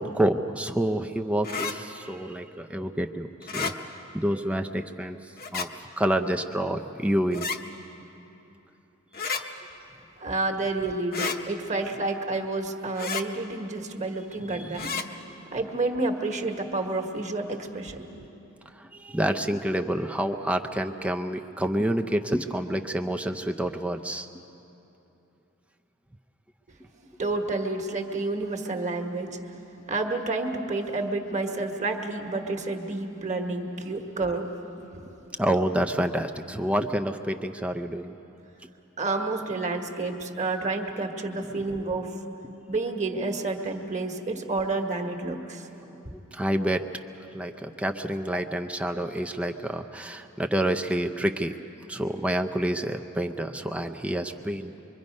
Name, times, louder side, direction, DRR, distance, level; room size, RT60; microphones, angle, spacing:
voice 1, 0.0-3.7 4.1-5.2 5.5-7.5 9.2-9.5 14.4-14.9 18.7-24.3 35.4-38.2 41.4-41.6 46.3-46.9 47.3-51.5 51.9-54.9, right 1 dB, 5° right, 4 dB, 0.5 m, -28 dB
sound 1, 1.4-1.8 3.4-3.8 5.4-5.7 7.3-7.6 9.1-9.4 11.1-11.4 13.0-13.3 14.8-15.1, left 5 dB, 45° left, 1.0 m, -31 dB
voice 2, 10.2-15.0 15.5-18.1 27.2-29.4 29.9-34.5 34.9-35.0 39.0-42.1 42.7-45.6 46.0-46.1 48.3-48.4, right 2 dB, 35° right, 3 dB, 1.5 m, -29 dB
25.0 x 23.5 x 5.3 m, 2.9 s
head